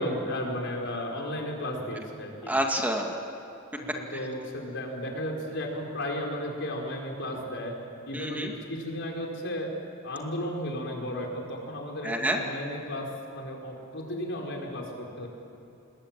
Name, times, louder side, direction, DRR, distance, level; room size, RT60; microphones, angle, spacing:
voice 1, 0.0-2.5 3.9-7.7 8.1-9.7 10.0-15.3, left 1 dB, 60° left, 1 dB, 5.0 m, -34 dB
voice 2, 2.5-3.2 8.1-8.5 12.0-12.4, right 1 dB, 10° right, 2 dB, 2.2 m, -28 dB
29.0 x 21.0 x 9.0 m, 2.9 s
head